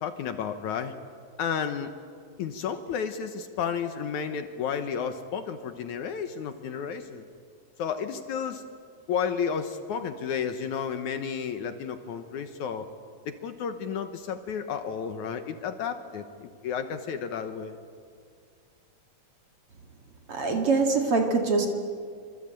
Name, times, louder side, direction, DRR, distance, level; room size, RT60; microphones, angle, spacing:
voice 1, 0.0-1.0 1.4-1.9 2.4-7.3 7.8-8.6 9.1-12.9 13.3-17.8, left 7 dB, 65° left, 8 dB, 2.3 m, -32 dB
voice 2, 20.3-21.7, right 4 dB, 45° right, 2 dB, 2.7 m, -24 dB
26.0 x 25.5 x 8.9 m, 2.2 s
omnidirectional pair, 4.0 m